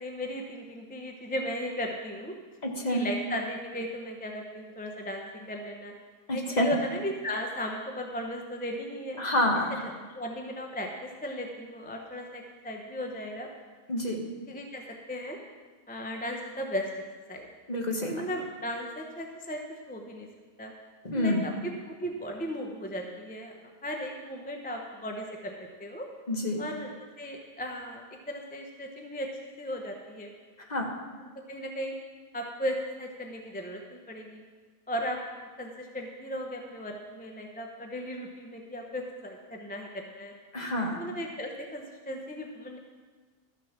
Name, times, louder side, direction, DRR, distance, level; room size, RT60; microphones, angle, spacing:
voice 1, 0.0-2.4 2.9-5.9 6.3-9.2 10.1-13.5 14.5-15.4 15.9-16.9 17.3-17.5 18.1-20.3 20.6-20.7 21.1-23.5 23.8-26.1 26.6-29.3 29.6-30.3 31.2-32.0 32.3-34.4 34.9-40.3 40.9-42.8, equal, 10° left, 1 dB, 0.6 m, -36 dB
voice 2, 2.6-3.1 6.3-6.7 9.2-9.8 13.9-14.2 17.7-18.2 21.0-21.4 26.3-26.6 30.7-30.9 40.5-41.0, left 1 dB, 30° left, 1 dB, 1.3 m, -28 dB
13.0 x 6.5 x 5.9 m, 1.4 s
omnidirectional pair, 1.5 m